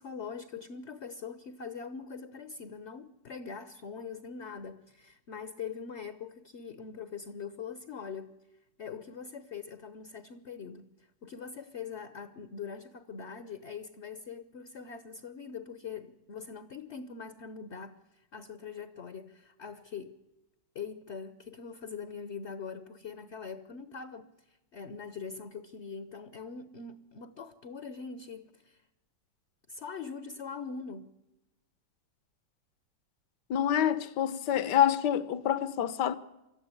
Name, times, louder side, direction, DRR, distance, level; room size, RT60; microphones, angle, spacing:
voice 1, 0.0-8.3 8.8-20.2 20.7-28.9 29.7-31.1, left 6 dB, 45° left, 1.0 m, -42 dB
voice 2, 33.5-36.2, left 10 dB, 70° left, 1.5 m, -27 dB
25.5 x 13.5 x 9.7 m
omnidirectional pair, 2.0 m